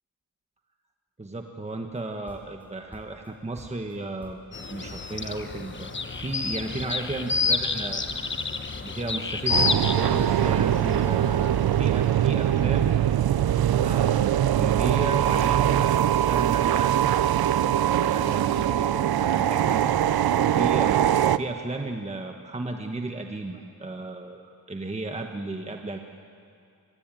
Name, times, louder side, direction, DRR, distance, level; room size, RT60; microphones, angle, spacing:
voice 1, 1.2-4.4 4.7-8.0 8.8-11.5 11.8-13.0 13.8-17.4 18.0-19.9 20.5-26.0, right 2 dB, 20° right, 3 dB, 1.3 m, -34 dB
sound 1, 2.0-3.3 3.6-4.6 4.8-5.2 5.5-5.9 6.1-6.5 6.8-7.2 7.4-9.0, equal, 5° left, 4.3 m, -48 dB
sound 2, 4.5-12.9, left 4 dB, 30° left, 1.2 m, -30 dB
sound 3, 9.5-21.4, right 11 dB, 85° right, 0.7 m, -22 dB
25.0 x 23.5 x 9.1 m, 2.4 s
wide cardioid pair, 145°, 36 cm